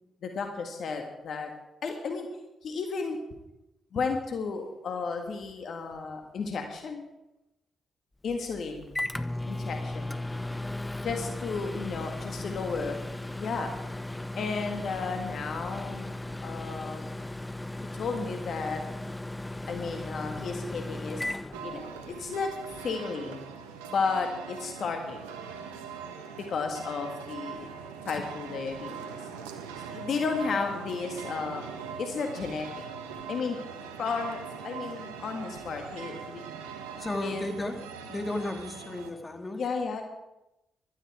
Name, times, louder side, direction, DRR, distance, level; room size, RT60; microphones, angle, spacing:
voice 1, 0.2-1.5 1.8-2.3 2.6-3.2 3.9-7.1 8.2-9.0 9.5-10.3 11.0-13.0 13.4-13.7 14.4-16.1 16.4-17.0 17.9-18.8 19.7-23.4 23.8-25.2 26.4-27.7 28.1-29.2 29.9-31.7 32.0-32.7 33.3-33.6 34.0-36.4 37.2-37.4 39.6-40.0, left 4 dB, 65° left, 4 dB, 1.7 m, -33 dB
Microwave oven, 8.3-22.3, left 1 dB, 15° left, 0.9 m, -36 dB
voice 2, 12.4-12.8 37.0-37.8 38.1-39.7, left 2 dB, 30° left, 5 dB, 2.4 m, -34 dB
sound 1, 21.5-39.1, right 6 dB, 90° right, 1.2 m, -41 dB
16.0 x 12.5 x 4.9 m, 0.92 s
hypercardioid pair, 45°, 0 cm